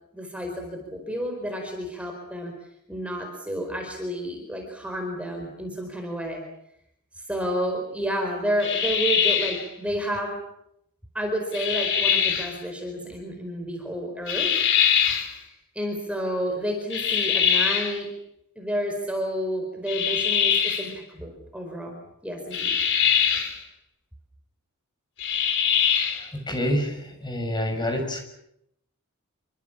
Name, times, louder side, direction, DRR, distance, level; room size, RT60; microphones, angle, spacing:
voice 1, 0.1-2.5 2.9-6.4 7.3-10.4 11.1-14.5 15.2-18.1 18.6-22.7, equal, 5° right, 2 dB, 4.6 m, -30 dB
sound 1, 8.6-9.7 11.5-12.5 14.3-15.3 16.9-18.0 19.9-20.9 22.5-23.6 25.2-26.3, left 7 dB, 60° left, 4.0 m, -23 dB
voice 2, 26.1-28.2, equal, 20° left, 4 dB, 6.8 m, -28 dB
27.5 x 25.0 x 7.4 m, 0.79 s
head